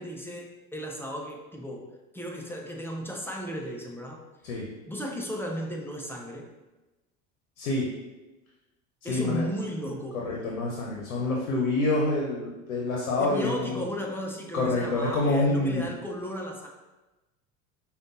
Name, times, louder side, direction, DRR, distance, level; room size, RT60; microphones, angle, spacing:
voice 1, 0.0-1.9 2.1-4.2 4.9-6.4 9.0-10.2 13.2-16.7, equal, 5° left, 0 dB, 0.3 m, -35 dB
voice 2, 7.6-7.9 9.1-9.5 10.2-13.7 14.5-15.9, left 2 dB, 75° left, -2 dB, 0.7 m, -27 dB
5.0 x 2.3 x 2.6 m, 1.1 s
hypercardioid pair, 80°, 41 cm